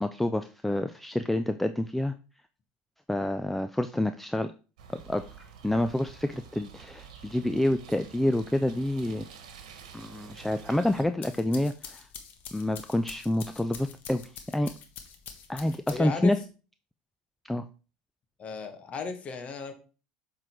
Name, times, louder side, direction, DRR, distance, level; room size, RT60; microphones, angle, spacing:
voice 1, 0.0-2.1 3.1-4.5 4.9-5.2 5.6-9.3 9.9-12.1 12.5-14.2 14.5-14.7 15.5-16.4 17.4-17.6, left 1 dB, 5° left, 9 dB, 0.4 m, -28 dB
sound 1, 4.8-11.0, right 7 dB, 80° right, 1.3 m, -49 dB
sound 2, 11.0-16.3, left 7 dB, 50° left, 1.3 m, -46 dB
voice 2, 15.9-16.4 18.4-19.7, left 4 dB, 35° left, 7 dB, 1.5 m, -35 dB
7.7 x 3.9 x 4.5 m, 0.35 s
hypercardioid pair, 95°, 4 cm